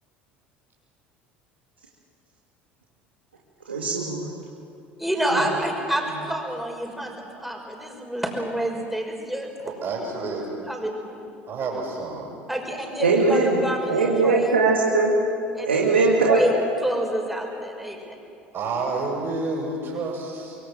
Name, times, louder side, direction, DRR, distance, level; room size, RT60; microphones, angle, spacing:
voice 1, 3.7-4.4 5.3-5.5 13.0-13.6 13.9-15.1 15.7-16.4, right 3 dB, 85° right, -3 dB, 2.3 m, -20 dB
voice 2, 5.0-9.5 10.6-11.2 12.5-14.5 15.5-16.5 16.8-18.2, right 1 dB, ahead, 1 dB, 5.8 m, -28 dB
voice 3, 9.6-10.5 11.5-12.3 18.5-20.6, right 3 dB, 40° right, -3 dB, 7.6 m, -29 dB
24.5 x 23.5 x 7.7 m, 2.5 s
figure-of-eight pair, 65°, 6 cm